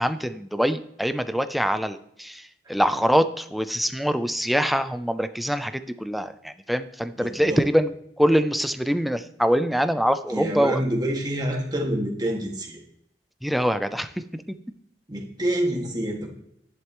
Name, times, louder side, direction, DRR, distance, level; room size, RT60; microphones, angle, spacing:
voice 1, 0.0-7.9 8.2-10.8 13.4-14.2, equal, ahead, 10 dB, 0.5 m, -24 dB
voice 2, 7.2-7.6 10.3-12.8 15.1-16.3, right 1 dB, 25° right, 0 dB, 2.0 m, -27 dB
11.0 x 11.0 x 3.1 m, 0.73 s
head